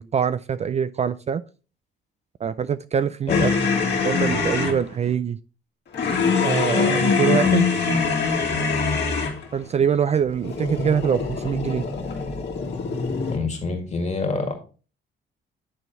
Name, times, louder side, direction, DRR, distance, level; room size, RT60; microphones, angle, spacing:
voice 1, 0.0-1.4 2.4-3.5 4.0-5.4 6.4-7.7 9.5-11.9, right 7 dB, 35° right, 0.3 m, -24 dB
sound 1, 3.3-4.8 5.9-9.4 10.4-13.4, left 5 dB, 60° left, 2.1 m, -23 dB
voice 2, 13.3-14.5, left 4 dB, 35° left, 2.0 m, -26 dB
9.6 x 3.9 x 3.9 m
cardioid pair, 90°, 20 cm